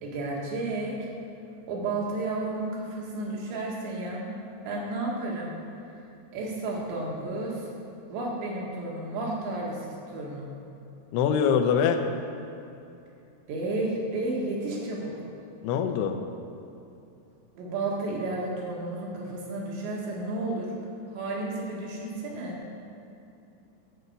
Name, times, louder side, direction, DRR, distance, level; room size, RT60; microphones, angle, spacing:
voice 1, 0.0-0.9 1.6-4.3 4.6-5.5 6.3-7.6 8.1-9.8 10.1-10.5 13.5-15.1 17.6-20.7 21.1-22.6, right 2 dB, 70° right, -3 dB, 3.9 m, -32 dB
voice 2, 11.1-12.0 15.6-16.2, left 7 dB, 85° left, 5 dB, 2.3 m, -23 dB
12.5 x 5.4 x 8.0 m, 2.7 s
omnidirectional pair, 5.4 m